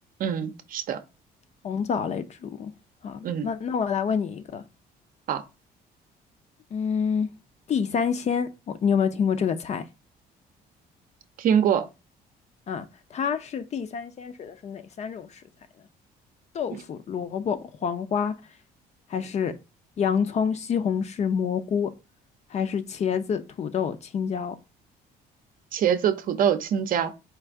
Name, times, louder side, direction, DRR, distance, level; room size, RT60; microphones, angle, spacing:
voice 1, 0.2-1.0 3.2-3.5 5.3-5.4 11.4-11.9 25.7-27.1, right 8 dB, 55° right, 0.6 m, -24 dB
voice 2, 1.6-2.7 3.0-4.6 6.7-7.3 7.7-9.8 12.7-15.4 16.5-18.3 19.1-19.5 20.0-21.9 22.5-24.5, left 7 dB, 40° left, 0.5 m, -27 dB
4.5 x 2.5 x 3.4 m
cardioid pair, 110°, 17 cm